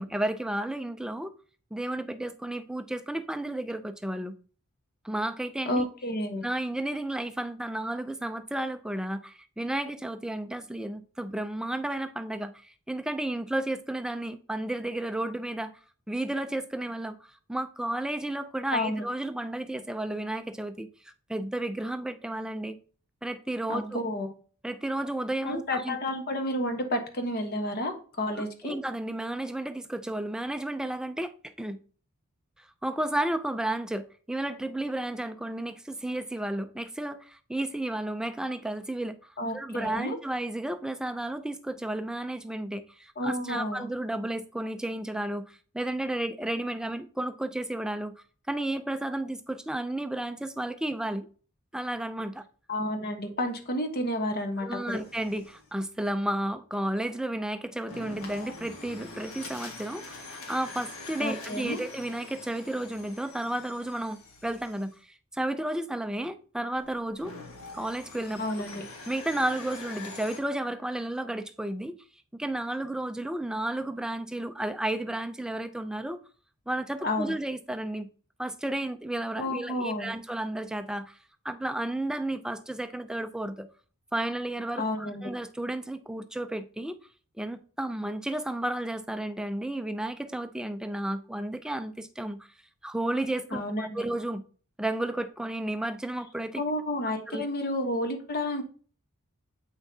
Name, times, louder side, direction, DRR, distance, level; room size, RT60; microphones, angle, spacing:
voice 1, 0.0-1.3 1.7-4.3 5.0-5.9 6.4-15.7 16.1-22.8 23.2-24.0 24.6-26.0 28.4-31.8 32.6-48.1 48.5-51.3 51.7-52.4 54.6-67.3 67.7-68.4 69.1-72.0 72.3-76.2 76.7-78.1 78.4-81.2 81.4-83.7 84.1-87.0 87.4-92.4 92.8-94.4 94.8-96.6 97.3-97.4, right 1 dB, 5° right, 0.4 m, -32 dB
voice 2, 5.7-6.4 18.7-19.0 23.7-24.3 25.4-28.8 39.4-40.2 43.2-43.9 52.7-55.0 61.2-61.8 68.4-68.8 77.0-77.3 79.4-80.1 84.8-85.3 93.5-94.0 96.6-98.6, left 1 dB, 45° left, 1.1 m, -31 dB
sound 1, 54.9-55.7 57.9-64.9 66.8-70.4, left 2 dB, 70° left, 1.7 m, -44 dB
8.1 x 5.6 x 2.8 m
head